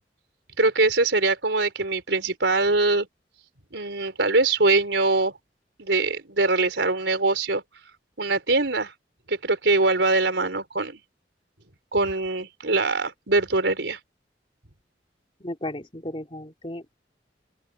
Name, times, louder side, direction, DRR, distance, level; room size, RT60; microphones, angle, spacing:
voice 1, 0.6-3.1 3.7-5.4 5.8-7.6 8.2-8.9 9.3-11.0 11.9-14.0, right 3 dB, 90° right, 4.1 m, -23 dB
voice 2, 15.4-16.9, left 1 dB, 30° left, 3.3 m, -34 dB
open air
head